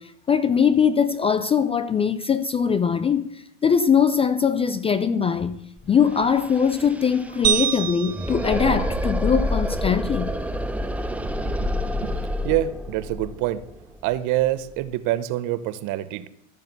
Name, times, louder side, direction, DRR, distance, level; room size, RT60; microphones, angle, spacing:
voice 1, 0.0-5.6 5.9-10.3, left 7 dB, 15° left, 0.4 m, -21 dB
sound 1, 5.8-5.9 6.1-14.9, equal, 5° right, 0.8 m, -28 dB
sound 2, 7.4-9.8, right 12 dB, 70° right, 1.9 m, -27 dB
voice 2, 11.4-12.1 12.4-13.6 14.0-16.3, right 14 dB, 45° right, 0.9 m, -26 dB
14.0 x 6.7 x 8.1 m
hypercardioid pair, 115°, 42 cm